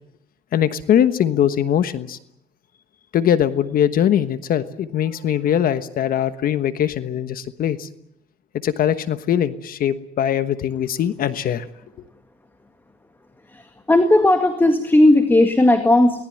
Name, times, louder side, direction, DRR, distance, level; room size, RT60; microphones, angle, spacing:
voice 1, 0.5-2.2 3.1-7.9 8.6-11.6, left 10 dB, 60° left, 12 dB, 1.3 m, -21 dB
voice 2, 13.5-16.3, left 1 dB, 10° left, 7 dB, 1.9 m, -16 dB
24.0 x 19.0 x 9.0 m, 0.78 s
cardioid pair, 110°, 17 cm